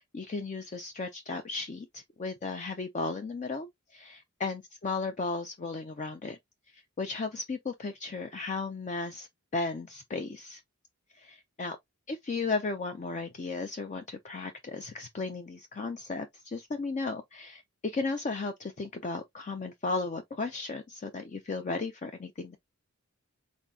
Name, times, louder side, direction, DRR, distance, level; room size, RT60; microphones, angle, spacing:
voice 1, 0.1-3.7 3.9-6.4 6.7-9.3 9.5-10.6 11.2-11.8 12.3-22.6, left 3 dB, 35° left, 0.4 m, -35 dB
4.3 x 3.5 x 2.7 m
head